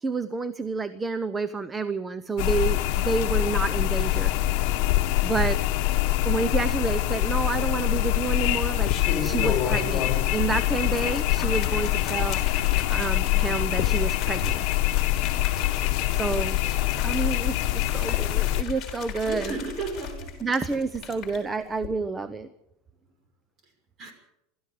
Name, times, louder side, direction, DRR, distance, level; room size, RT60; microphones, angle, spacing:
voice 1, 0.0-4.3 5.2-5.6 6.2-8.9 9.2-12.4 12.6-14.6 16.2-16.6 17.0-19.5 20.4-22.5, right 4 dB, 15° right, 13 dB, 0.7 m, -29 dB
sound 1, 2.4-18.6, left 16 dB, 55° left, 1.4 m, -24 dB
sound 2, 8.9-10.4 10.7-21.4 21.7-21.9, left 6 dB, 30° left, 5.8 m, -36 dB
voice 2, 19.2-20.3 24.0-24.1, right 4 dB, 30° right, 5 dB, 6.3 m, -34 dB
27.0 x 13.5 x 7.7 m, 0.87 s
supercardioid pair, 150°, 0 cm